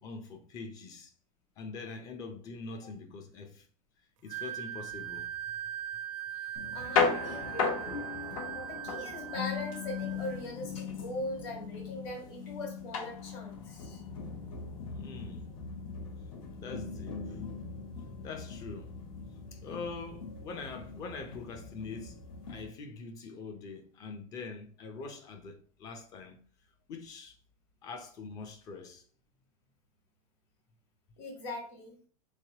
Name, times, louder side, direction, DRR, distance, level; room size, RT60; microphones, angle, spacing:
voice 1, 0.0-1.1 1.6-3.7 4.2-5.3 14.8-15.5 16.6-17.4 18.2-19.0 19.5-22.2 22.5-26.4 26.9-27.4 27.8-29.0, left 4 dB, 20° left, 0.4 m, -44 dB
Wind instrument woodwind instrument, 4.3-10.4, right 11 dB, 60° right, 0.4 m, -40 dB
voice 2, 6.3-8.0 8.5-14.0 31.2-32.0, left 2 dB, 50° left, 1.4 m, -40 dB
sound 1, 6.6-22.7, left 5 dB, 65° left, 1.0 m, -37 dB
3.6 x 3.1 x 2.7 m
supercardioid pair, 165°, 19 cm